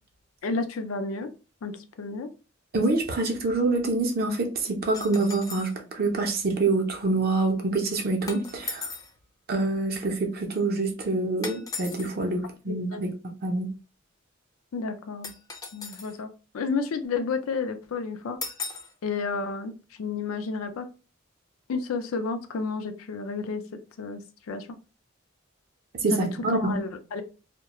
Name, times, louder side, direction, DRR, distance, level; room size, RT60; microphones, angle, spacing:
voice 1, 0.4-1.3 1.6-2.3 12.7-13.0 14.7-15.3 15.7-18.4 19.0-19.7 20.0-20.9 21.7-23.6 24.0-24.2 24.5-24.7 26.1-27.2, left 4 dB, 90° left, 0.4 m, -31 dB
voice 2, 2.7-8.9 9.5-13.1 13.4-13.7 26.0-26.8, right 2 dB, 50° right, 0.5 m, -26 dB
sound 1, 4.9-5.8 8.3-9.1 11.4-12.1 15.2-16.2 18.4-18.9, left 4 dB, 20° left, 0.3 m, -37 dB
2.3 x 2.1 x 2.8 m
head